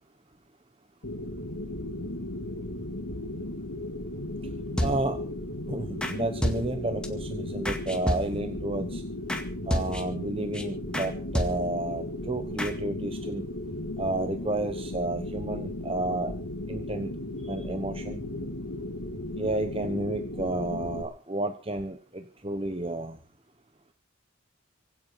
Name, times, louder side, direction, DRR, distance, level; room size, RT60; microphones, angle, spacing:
sound 1, 1.0-21.0, left 1 dB, 80° left, 2.8 m, -36 dB
sound 2, 4.8-5.3 6.0-6.2 6.4-7.1 7.7-8.6 9.3-9.4 9.7-10.2 10.5-10.6 10.9-11.1 11.3-11.9 12.6-12.7, equal, 5° left, 2.0 m, -30 dB
voice 1, 4.8-5.2 5.7-9.0 9.7-13.4 14.0-16.3 16.7-17.1 17.4-18.2 19.4-23.2, right 2 dB, 25° right, 8 dB, 1.0 m, -31 dB
24.5 x 8.5 x 5.7 m, 0.39 s
head